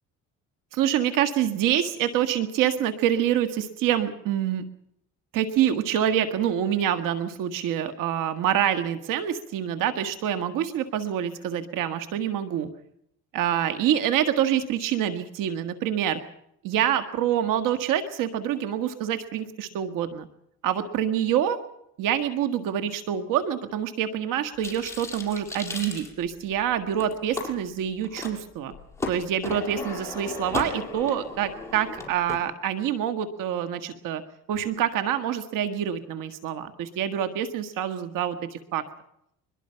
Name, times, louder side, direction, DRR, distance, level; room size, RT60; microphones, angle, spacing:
voice 1, 0.7-4.6 5.3-12.7 13.3-16.2 16.6-20.3 20.6-21.6 22.0-28.7 29.1-34.2 34.5-38.8, right 10 dB, 80° right, 9 dB, 1.9 m, -26 dB
sound 1, 24.6-26.6 27.0-27.5 28.0-28.3 28.7-32.4, left 3 dB, 10° left, 6.6 m, -35 dB
23.5 x 22.0 x 5.8 m, 0.75 s
cardioid pair, 110°, 32 cm